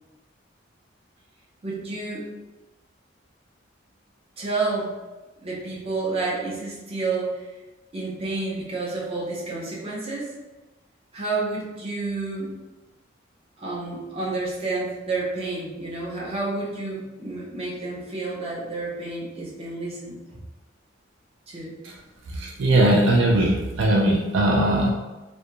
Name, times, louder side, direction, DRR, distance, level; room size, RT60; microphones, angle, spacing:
voice 1, 1.6-2.3 4.4-4.9 5.4-7.4 7.9-10.3 11.1-12.5 13.6-20.2 21.5-21.7, right 3 dB, 30° right, -5 dB, 0.6 m, -30 dB
voice 2, 22.3-24.9, right 1 dB, 70° right, -2 dB, 0.4 m, -20 dB
2.4 x 2.1 x 2.8 m, 1.1 s
head